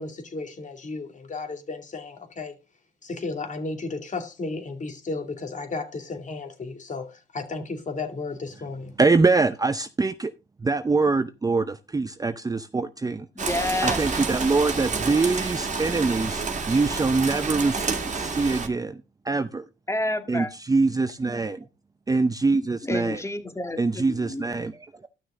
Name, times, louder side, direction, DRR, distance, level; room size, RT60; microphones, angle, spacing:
voice 1, 0.0-2.5 3.0-8.9, left 3 dB, 40° left, 2.4 m, -34 dB
voice 2, 9.0-10.3 10.6-13.3 13.8-19.7 20.3-21.6 22.1-23.2 23.8-25.1, right 3 dB, 20° right, 0.6 m, -24 dB
voice 3, 13.4-14.0 19.9-20.5 22.8-24.5, left 2 dB, 15° left, 1.9 m, -29 dB
Rain, 13.4-18.7, right 4 dB, 35° right, 2.0 m, -29 dB
13.0 x 6.2 x 3.7 m
cardioid pair, 90°, 20 cm